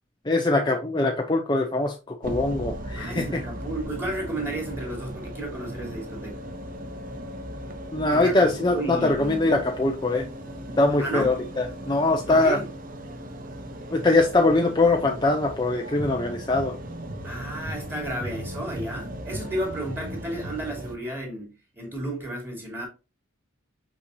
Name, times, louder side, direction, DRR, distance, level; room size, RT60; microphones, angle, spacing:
voice 1, 0.2-3.4 7.9-10.3 10.8-12.6 13.9-16.7, left 2 dB, 20° left, 0.6 m, -22 dB
sound 1, 2.2-21.0, right 1 dB, 45° right, 0.8 m, -37 dB
voice 2, 3.0-6.4 8.1-8.4 8.7-9.5 11.0-11.5 12.3-12.7 17.2-22.9, right 1 dB, 10° right, 2.9 m, -33 dB
6.2 x 5.7 x 2.7 m
head